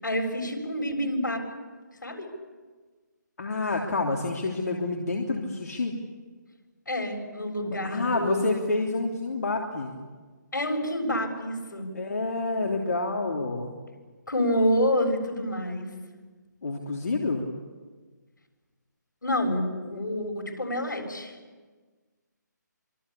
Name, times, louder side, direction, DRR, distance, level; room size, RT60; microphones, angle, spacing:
voice 1, 0.0-1.5 2.0-2.3 6.9-8.6 10.5-11.9 14.3-15.9 19.2-21.4, equal, 80° left, 4 dB, 7.2 m, -28 dB
voice 2, 3.4-6.0 7.6-10.0 11.9-13.7 16.6-17.5, left 3 dB, 60° left, 0 dB, 3.2 m, -28 dB
26.5 x 23.5 x 8.5 m, 1.4 s
figure-of-eight pair, 155°, 10 cm